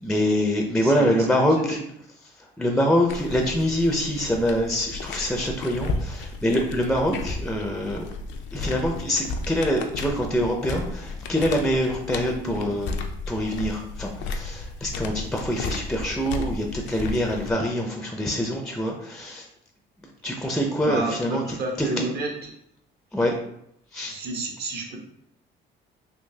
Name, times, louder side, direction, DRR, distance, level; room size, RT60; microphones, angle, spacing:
voice 1, 0.0-1.8 2.6-8.0 8.5-12.9 13.3-19.5 20.2-21.4 21.8-21.9 23.1-23.4 23.9-24.1, equal, 5° left, 1 dB, 0.5 m, -25 dB
voice 2, 0.8-1.8 12.4-12.7 20.8-22.5 24.0-25.0, right 2 dB, 55° right, 1 dB, 1.0 m, -31 dB
sound 1, 3.1-17.5, left 3 dB, 70° left, 0.5 m, -34 dB
3.7 x 2.7 x 2.7 m, 0.74 s
cardioid pair, 95°, 19 cm